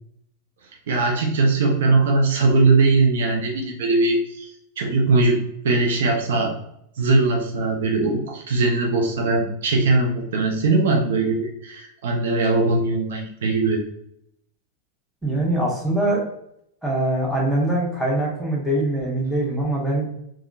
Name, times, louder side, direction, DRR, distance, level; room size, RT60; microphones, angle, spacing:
voice 1, 0.9-4.5 4.8-6.5 7.0-13.8, right 3 dB, 60° right, 1 dB, 0.5 m, -20 dB
voice 2, 15.2-16.2 16.8-20.1, right 1 dB, ahead, -4 dB, 1.1 m, -23 dB
3.5 x 2.4 x 2.4 m, 0.74 s
figure-of-eight pair, 90°, 0 cm